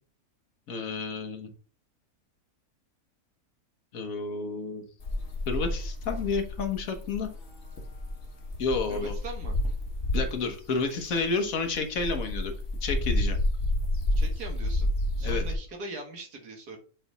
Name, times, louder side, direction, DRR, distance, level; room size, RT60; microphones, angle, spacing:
voice 1, 0.7-1.5 3.9-4.8 5.5-7.3 8.6-9.1 10.1-12.5 12.8-13.4 15.2-15.4, left 4 dB, 65° left, 5 dB, 1.5 m, -30 dB
sound 1, 5.0-10.5 11.0-15.5, left 1 dB, 50° left, 1.4 m, -30 dB
voice 2, 8.9-9.6 14.2-14.9 15.2-16.8, right 2 dB, 90° right, 2 dB, 2.1 m, -41 dB
7.9 x 3.4 x 4.0 m, 0.40 s
omnidirectional pair, 1.6 m